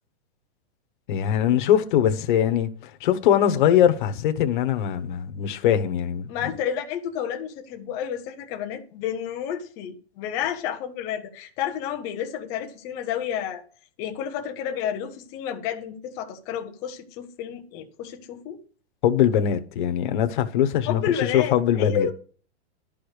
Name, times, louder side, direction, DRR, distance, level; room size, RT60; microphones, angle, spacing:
voice 1, 1.1-6.3 19.0-22.1, left 10 dB, 45° left, 1.1 m, -22 dB
voice 2, 6.3-13.6 14.0-18.6 20.9-22.1, left 9 dB, 10° left, 0.4 m, -30 dB
11.5 x 5.1 x 6.4 m
hypercardioid pair, 165°, 34 cm